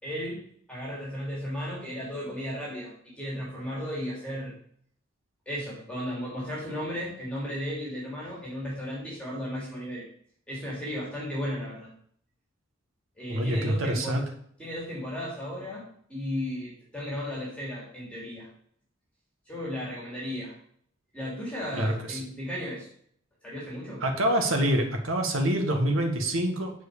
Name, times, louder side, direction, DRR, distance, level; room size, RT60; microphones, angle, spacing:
voice 1, 0.0-0.4 0.7-4.5 5.5-10.0 10.5-11.9 13.2-14.2 14.6-18.5 19.5-20.5 21.1-22.9 23.4-24.0, equal, 5° left, -5 dB, 2.9 m, -35 dB
voice 2, 13.3-14.2 21.7-22.2 24.0-26.7, right 1 dB, 85° right, 3 dB, 1.6 m, -26 dB
7.4 x 4.6 x 6.7 m, 0.63 s
head